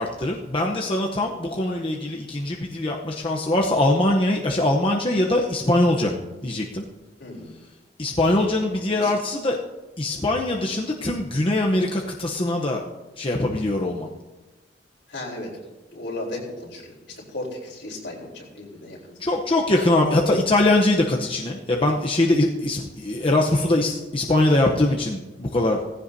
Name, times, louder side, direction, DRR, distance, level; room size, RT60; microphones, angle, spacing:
voice 1, 0.0-6.1 6.4-6.8 8.0-9.6 10.0-12.8 13.2-14.1 19.2-25.8, left 1 dB, 30° left, 0 dB, 0.9 m, -22 dB
voice 2, 7.2-7.5 8.3-9.1 15.1-15.5 15.9-17.0 17.3-19.2 23.2-23.3, left 2 dB, 75° left, -2 dB, 4.0 m, -36 dB
17.0 x 15.5 x 2.8 m, 1.2 s
head